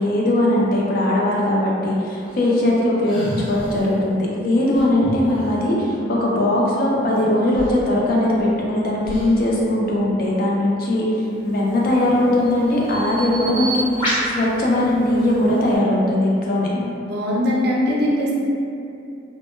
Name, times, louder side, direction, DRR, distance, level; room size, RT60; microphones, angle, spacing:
voice 1, 0.0-11.0 11.4-16.7, left 1 dB, 50° left, -4 dB, 0.4 m, -20 dB
sound 1, 2.3-3.9 4.7-5.7 7.2-7.3 7.5-8.5 9.0-9.6, equal, 5° right, 0.6 m, -33 dB
Bird vocalization bird call bird song, 11.5-15.8, right 1 dB, 25° left, 0.8 m, -29 dB
voice 2, 16.7-18.3, left 1 dB, 55° right, -5 dB, 0.4 m, -21 dB
2.1 x 2.0 x 3.0 m, 2.6 s
head